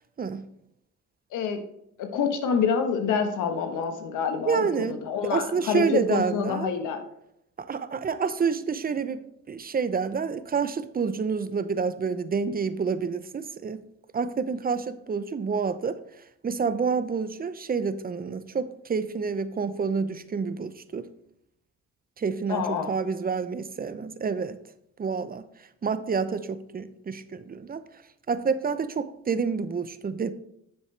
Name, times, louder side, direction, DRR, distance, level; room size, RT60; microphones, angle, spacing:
voice 1, 2.0-7.0 22.5-22.9, left 6 dB, 85° left, 6 dB, 1.3 m, -27 dB
voice 2, 4.4-6.7 7.7-9.2 9.5-13.8 14.1-16.0 16.4-21.1 22.2-24.6 25.0-25.4 25.8-27.8 28.3-30.3, right 5 dB, 30° right, 13 dB, 0.7 m, -28 dB
10.5 x 7.0 x 3.3 m, 0.79 s
cardioid pair, 90°, 30 cm